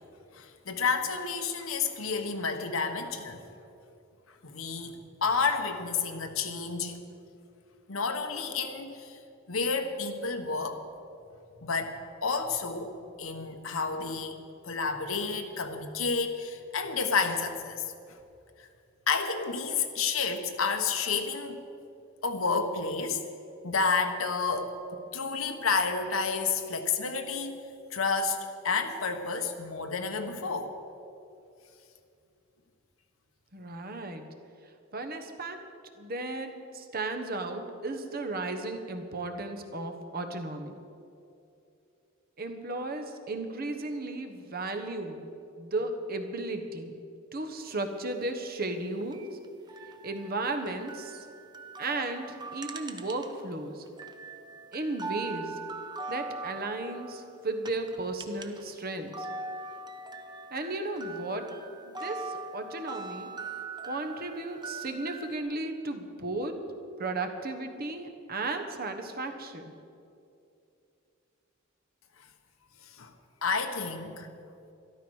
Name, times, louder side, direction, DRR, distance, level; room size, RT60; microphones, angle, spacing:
voice 1, 0.3-3.4 4.4-4.9 5.2-7.0 7.9-9.2 9.5-10.8 11.6-11.9 12.2-12.9 13.2-17.8 19.1-21.6 22.2-23.2 23.6-27.6 27.9-30.7 73.0-73.1 73.4-74.3, left 5 dB, 90° left, 6 dB, 1.2 m, -30 dB
voice 2, 33.5-34.3 34.9-35.6 36.0-40.8 42.4-45.3 45.6-47.0 47.3-49.4 50.0-51.3 51.8-53.8 54.7-55.6 56.1-59.3 60.5-61.5 61.8-63.3 63.8-66.6 67.0-69.7, right 2 dB, 45° right, 6 dB, 1.2 m, -35 dB
sound 1, 49.0-53.5 53.9-58.7 59.0-65.4, right 3 dB, 20° right, 0.7 m, -41 dB
13.0 x 12.5 x 6.4 m, 2.6 s
head